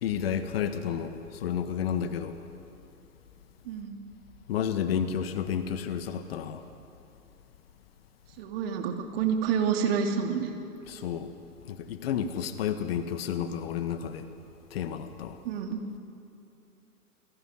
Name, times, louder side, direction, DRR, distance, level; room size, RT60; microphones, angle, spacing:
voice 1, 0.0-2.4 4.5-6.6 10.9-11.3 11.6-14.3 14.7-15.4, left 8 dB, 40° left, 10 dB, 1.6 m, -31 dB
voice 2, 3.7-4.0 8.4-10.5 15.4-15.8, right 7 dB, 40° right, 4 dB, 2.8 m, -28 dB
28.0 x 20.5 x 9.5 m, 2.7 s
figure-of-eight pair, 120°, 45 cm